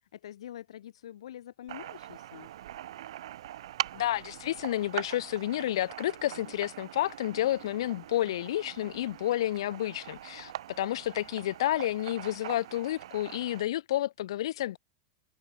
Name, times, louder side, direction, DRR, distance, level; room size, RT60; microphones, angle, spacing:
voice 1, 0.0-2.5, left 11 dB, 85° left, 3.1 m, -45 dB
sound 1, 1.7-13.6, right 13 dB, 70° right, 0.9 m, -42 dB
voice 2, 3.9-14.8, left 13 dB, 65° left, 1.4 m, -30 dB
supercardioid pair, 175°, 3 cm